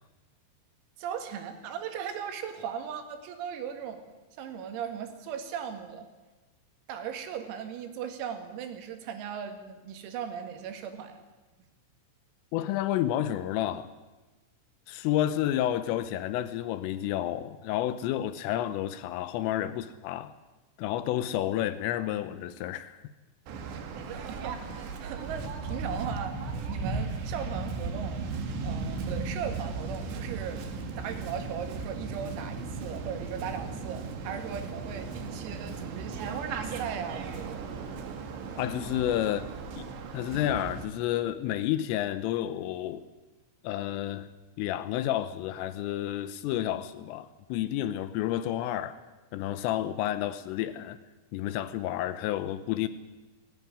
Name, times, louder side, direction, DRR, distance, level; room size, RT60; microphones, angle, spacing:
voice 1, 1.0-4.0 4.4-6.1 6.9-11.2 24.1-26.4 26.7-28.2 28.6-30.7 31.0-37.6, right 8 dB, 90° right, 4.8 m, -38 dB
voice 2, 12.5-13.9 14.9-20.3 20.8-23.0 38.6-39.5 39.8-43.1 43.6-44.3 44.6-49.0 49.3-51.0 51.3-52.9, left 12 dB, 80° left, 3.3 m, -30 dB
Waves surf, 23.5-40.8, right 4 dB, 65° right, 3.8 m, -36 dB
19.0 x 16.5 x 9.9 m
omnidirectional pair, 6.0 m